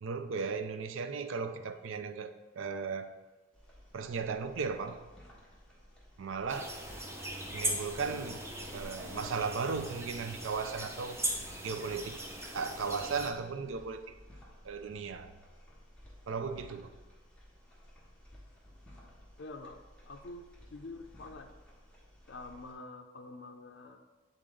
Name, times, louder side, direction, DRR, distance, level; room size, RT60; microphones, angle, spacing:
voice 1, 0.0-3.1 3.9-5.0 6.2-6.7 7.5-8.4 8.7-11.2 11.6-12.2 12.5-14.2 14.6-15.3 16.3-16.9, right 5 dB, 85° right, 9 dB, 0.5 m, -36 dB
sound 1, 3.5-22.7, equal, 5° left, 1.2 m, -56 dB
sound 2, 6.5-13.3, right 1 dB, 15° right, 0.7 m, -39 dB
voice 2, 19.4-19.8 20.1-21.5 22.3-24.0, left 2 dB, 60° left, 4 dB, 0.5 m, -46 dB
8.6 x 3.9 x 3.7 m, 1.2 s
head